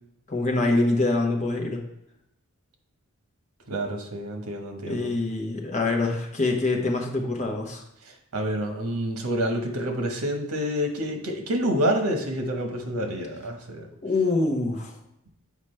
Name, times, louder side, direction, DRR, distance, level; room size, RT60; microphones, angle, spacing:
voice 1, 0.3-1.8 4.9-7.8 14.0-15.0, left 2 dB, 35° left, 1 dB, 1.0 m, -25 dB
voice 2, 3.7-5.1 8.0-13.9, equal, 85° right, 4 dB, 1.2 m, -28 dB
7.5 x 5.0 x 3.3 m, 0.82 s
head